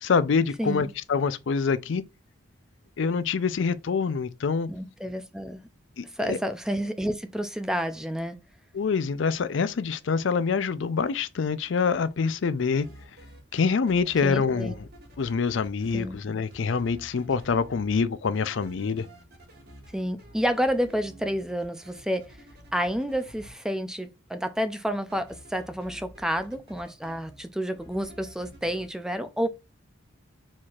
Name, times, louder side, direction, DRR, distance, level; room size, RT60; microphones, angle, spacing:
voice 1, 0.0-2.0 3.0-4.7 6.0-6.4 8.7-12.9 13.5-14.7 15.2-19.1, left 5 dB, 65° left, 0.4 m, -26 dB
voice 2, 4.7-5.6 6.1-8.4 14.2-14.8 15.9-16.2 19.9-22.3 22.7-29.5, equal, 5° right, 0.4 m, -29 dB
sound 1, 12.7-13.6 13.9-16.2 16.5-18.1 18.3-23.5 25.1-27.4 27.7-28.9, equal, 50° right, 1.9 m, -50 dB
4.7 x 4.3 x 2.4 m
head